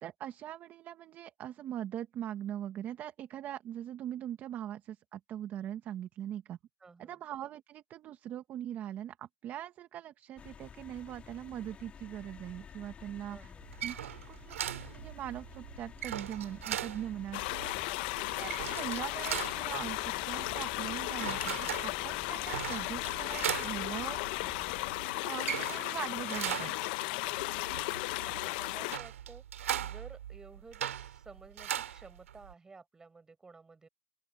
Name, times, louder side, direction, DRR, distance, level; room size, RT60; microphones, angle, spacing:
voice 1, 0.0-6.6 7.0-13.5 13.8-17.7 18.3-26.9, right 11 dB, 25° right, 1.3 m, -41 dB
voice 2, 6.8-7.2 13.3-13.7 28.2-29.4 29.8-33.9, right 4 dB, 10° right, 5.9 m, -53 dB
sound 1, 10.4-25.0, left 7 dB, 15° left, 3.2 m, -51 dB
sound 2, 13.6-32.5, right 10 dB, 85° right, 2.6 m, -40 dB
sound 3, 17.3-29.0, left 23 dB, 45° left, 0.7 m, -35 dB
open air
hypercardioid pair, 150°, 7 cm